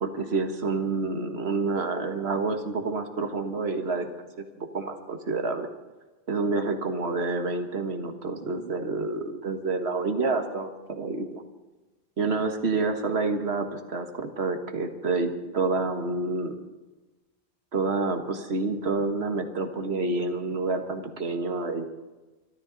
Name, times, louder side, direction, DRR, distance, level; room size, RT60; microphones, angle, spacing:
voice 1, 0.0-4.1 4.4-5.7 6.3-11.4 12.2-16.6 17.7-21.8, right 3 dB, 65° right, 5 dB, 1.7 m, -28 dB
24.5 x 13.0 x 4.0 m, 1.2 s
omnidirectional pair, 1.1 m